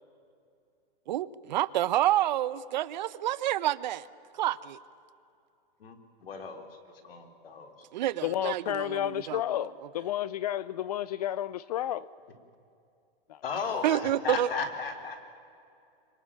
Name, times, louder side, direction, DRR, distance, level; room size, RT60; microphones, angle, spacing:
voice 1, 1.1-4.1 4.3-4.8 7.9-9.4 9.8-9.9 13.8-14.5, right 13 dB, 50° right, 18 dB, 0.9 m, -28 dB
voice 2, 5.8-6.7 7.0-7.7 13.4-15.2, left 5 dB, 70° left, 6 dB, 4.0 m, -35 dB
voice 3, 8.2-12.1 13.3-13.4, left 12 dB, 40° left, 19 dB, 0.5 m, -31 dB
25.5 x 24.5 x 8.9 m, 2.6 s
hypercardioid pair, 160°, 30 cm